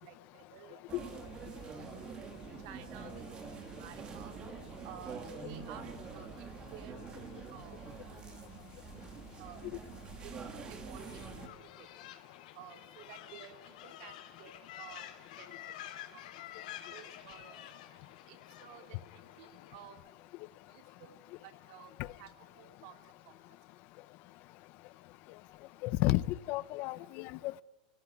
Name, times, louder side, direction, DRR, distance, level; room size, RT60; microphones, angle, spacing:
voice 1, 0.0-1.2 1.6-1.8 2.6-3.2 3.8-4.3 4.8-7.2 7.5-7.8 9.4-9.6 10.1-11.2 11.6-11.9 12.5-14.5 14.8-15.0 15.4-15.5 16.1-16.2 16.8-17.7 18.3-20.0 20.7-21.2 21.4-21.9 22.2-23.3, right 10 dB, 50° right, 7 dB, 2.9 m, -53 dB
sound 1, 0.9-11.5, right 5 dB, 20° right, 2.3 m, -46 dB
sound 2, 11.0-19.8, left 11 dB, 70° left, 3.4 m, -50 dB
voice 2, 25.8-27.6, left 18 dB, 40° left, 20 dB, 0.7 m, -32 dB
26.0 x 17.5 x 9.8 m, 1.3 s
supercardioid pair, 165°, 4 cm